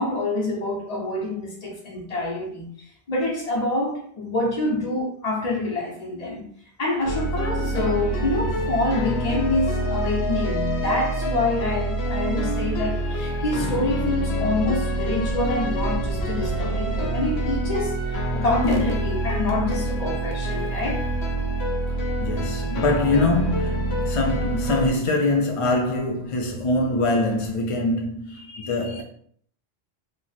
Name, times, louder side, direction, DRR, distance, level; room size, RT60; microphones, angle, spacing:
voice 1, 0.0-6.5 6.8-21.0, left 2 dB, 40° left, 0.8 m, -26 dB
sound 1, 7.1-24.9, right 1 dB, 75° left, 0.9 m, -26 dB
sound 2, 15.0-22.2 22.6-23.4 23.7-23.8 24.2-24.3 26.4-26.5 26.8-26.9 27.1-27.6, equal, 10° right, 0.8 m, -39 dB
voice 2, 22.2-29.0, left 2 dB, 55° left, 0.3 m, -24 dB
3.0 x 2.0 x 3.9 m
omnidirectional pair, 1.1 m